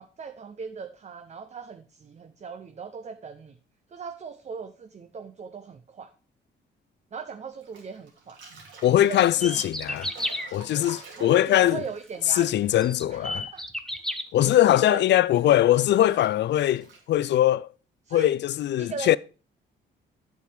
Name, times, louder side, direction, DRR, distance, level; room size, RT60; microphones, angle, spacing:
voice 1, 0.0-3.6 3.9-6.1 7.1-8.4 9.0-9.6 9.9-10.0 11.2-13.6 14.7-15.0 18.1-18.4 18.8-19.2, right 5 dB, 35° right, 0.7 m, -39 dB
Bathtub (filling or washing), 7.6-13.5 13.7-17.3, right 3 dB, 75° right, 2.9 m, -49 dB
voice 2, 8.8-10.1 10.5-11.8 12.3-13.5 14.3-17.7 18.1-19.2, left 13 dB, 60° left, 0.4 m, -21 dB
sound 1, 9.4-10.5 12.2-12.3 12.8-14.2, left 1 dB, 5° left, 1.0 m, -31 dB
8.3 x 6.8 x 4.5 m
cardioid pair, 90°, 20 cm